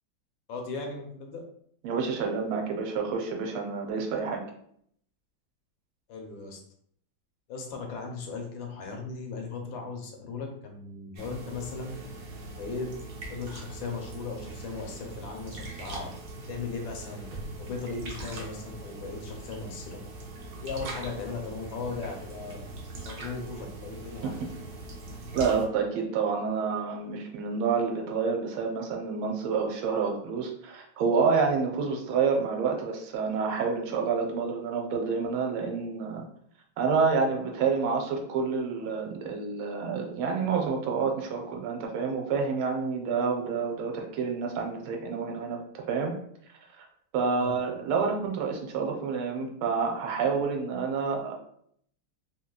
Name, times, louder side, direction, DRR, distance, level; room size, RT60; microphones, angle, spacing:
voice 1, 0.5-1.4 6.1-6.6 7.5-12.0 12.5-12.9 13.3-17.3 17.6-20.0 20.6-22.7 23.0-24.4 47.3-47.5, left 4 dB, 75° left, 2 dB, 1.3 m, -37 dB
voice 2, 1.8-4.4 24.2-24.5 25.3-36.2 36.8-46.1 46.8-46.9 47.1-51.3, right 5 dB, 90° right, 2 dB, 1.4 m, -28 dB
sound 1, 11.2-25.7, right 2 dB, 70° right, 1.0 m, -41 dB
3.2 x 2.8 x 2.2 m, 0.67 s
omnidirectional pair, 2.2 m